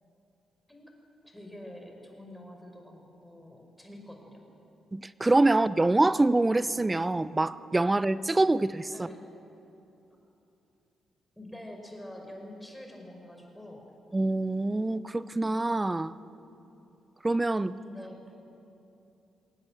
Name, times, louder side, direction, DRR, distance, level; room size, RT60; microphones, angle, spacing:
voice 1, 1.2-4.4 8.9-9.2 11.4-13.9 17.7-18.3, left 1 dB, 5° left, 5.6 m, -46 dB
voice 2, 4.9-9.1 14.1-16.1 17.2-17.7, right 2 dB, 20° right, 0.7 m, -25 dB
22.5 x 18.0 x 8.2 m
hypercardioid pair, 40°, 0 cm